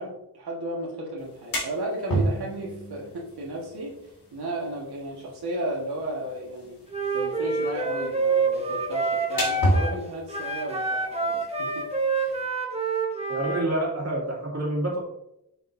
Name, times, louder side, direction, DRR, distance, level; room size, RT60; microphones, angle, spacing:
voice 1, 0.0-6.8 7.1-11.9 12.1-12.3, right 1 dB, 75° right, -4 dB, 1.6 m, -34 dB
sound 1, 1.2-12.5, right 1 dB, 60° left, 2.0 m, -33 dB
Wind instrument woodwind instrument, 6.9-10.0 10.3-13.7, right 3 dB, 15° right, 1.1 m, -27 dB
voice 2, 13.3-15.0, right 1 dB, 40° right, -4 dB, 2.5 m, -27 dB
6.8 x 6.5 x 2.7 m, 0.84 s
wide cardioid pair, 125°, 39 cm